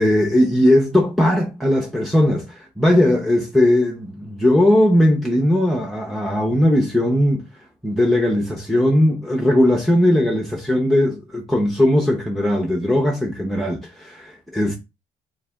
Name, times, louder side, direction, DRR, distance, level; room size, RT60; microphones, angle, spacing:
voice 1, 0.0-7.4 7.8-14.8, left 1 dB, ahead, 0.6 m, -18 dB
3.2 x 2.8 x 3.4 m
cardioid pair, 110°, 13 cm